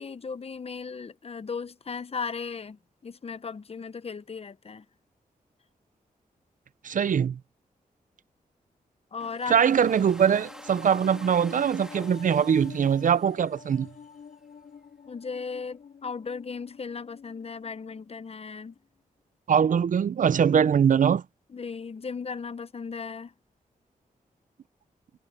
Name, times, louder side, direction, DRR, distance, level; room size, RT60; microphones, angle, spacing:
voice 1, 0.0-4.8 9.1-9.6 15.1-18.7 21.5-23.3, left 5 dB, 40° left, 0.9 m, -36 dB
voice 2, 6.8-7.4 9.5-13.9 19.5-21.2, right 7 dB, 60° right, 0.6 m, -22 dB
Domestic sounds home sounds, 9.2-14.2, equal, 5° right, 2.8 m, -48 dB
sound 1, 9.9-18.4 18.7-18.8, left 6 dB, 65° left, 4.7 m, -47 dB
cardioid pair, 75°, 15 cm